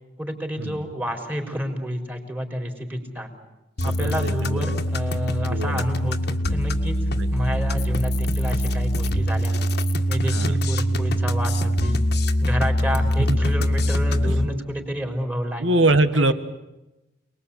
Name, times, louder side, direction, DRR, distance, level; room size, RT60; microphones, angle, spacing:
voice 1, 0.2-3.3 3.8-7.0 7.3-9.5 10.1-12.0 12.4-15.7 16.1-16.3, equal, 10° right, 4 dB, 4.3 m, -29 dB
sound 1, 3.8-14.5, equal, 60° left, 1.8 m, -23 dB
voice 2, 3.8-4.8 5.4-5.8 7.2-7.3 7.5-7.6 10.2-10.6 13.0-13.4 14.2-14.5 15.6-16.3, right 2 dB, 75° right, 11 dB, 1.8 m, -24 dB
29.0 x 21.0 x 8.6 m, 1.0 s
head